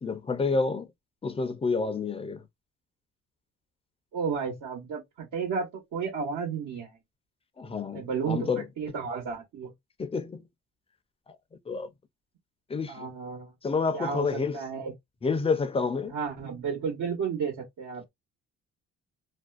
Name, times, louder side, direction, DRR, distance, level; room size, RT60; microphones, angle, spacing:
voice 1, 0.0-0.9 1.2-2.4 7.6-8.7 10.0-10.4 11.7-11.9 12.7-13.0 13.6-14.6 15.2-16.1, left 4 dB, 20° left, 0.5 m, -29 dB
voice 2, 4.1-7.0 7.9-9.7 12.9-13.5 13.9-14.3 14.5-14.9 16.1-18.1, right 6 dB, 80° right, 1.2 m, -32 dB
2.5 x 2.2 x 2.4 m
cardioid pair, 90°, 30 cm